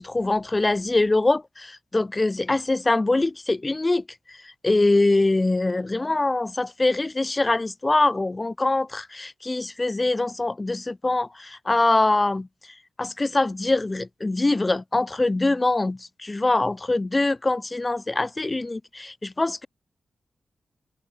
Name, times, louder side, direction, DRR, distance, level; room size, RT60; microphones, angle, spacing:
voice 1, 0.0-12.5 13.0-19.7, left 2 dB, 30° left, 0.3 m, -23 dB
open air
cardioid pair, 50°, 0 cm